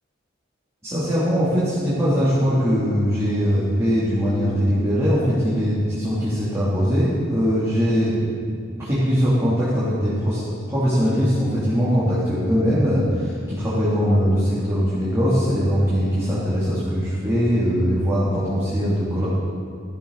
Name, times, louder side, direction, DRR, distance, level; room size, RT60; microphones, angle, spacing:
voice 1, 0.8-10.4 10.7-19.3, equal, 15° right, -10 dB, 3.2 m, -21 dB
17.5 x 13.5 x 4.2 m, 2.2 s
head